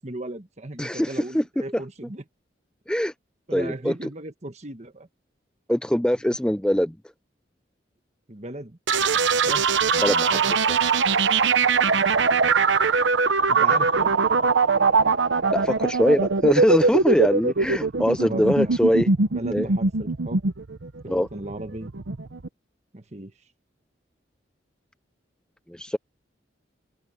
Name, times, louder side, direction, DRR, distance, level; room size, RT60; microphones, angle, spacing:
voice 1, 0.0-2.2 3.5-5.1 8.3-9.6 13.5-14.1 18.2-18.8 19.3-20.4 21.0-21.9 22.9-23.3, right 1 dB, 35° right, 1.3 m, -36 dB
voice 2, 0.8-1.4 2.9-3.1 3.5-3.9 5.7-6.9 10.0-10.8 15.5-19.1 19.5-19.7 21.1-21.3 25.7-26.0, equal, 5° left, 0.5 m, -22 dB
sound 1, 8.9-22.5, right 4 dB, 85° right, 0.9 m, -21 dB
open air
head